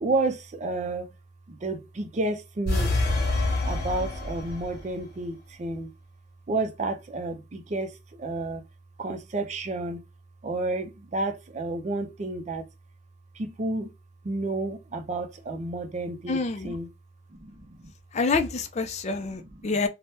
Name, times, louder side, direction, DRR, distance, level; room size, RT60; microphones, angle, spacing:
voice 1, 0.0-1.1 1.5-2.9 3.6-5.9 6.5-8.6 9.0-10.0 10.4-12.7 13.3-13.9 14.2-16.9 17.3-17.9 19.2-19.9, right 2 dB, 40° right, 0.5 m, -31 dB
sound 1, 2.6-4.9, left 2 dB, 55° left, 1.1 m, -26 dB
voice 2, 16.3-16.7 18.1-19.9, left 4 dB, 35° left, 0.4 m, -27 dB
2.6 x 2.1 x 3.4 m
head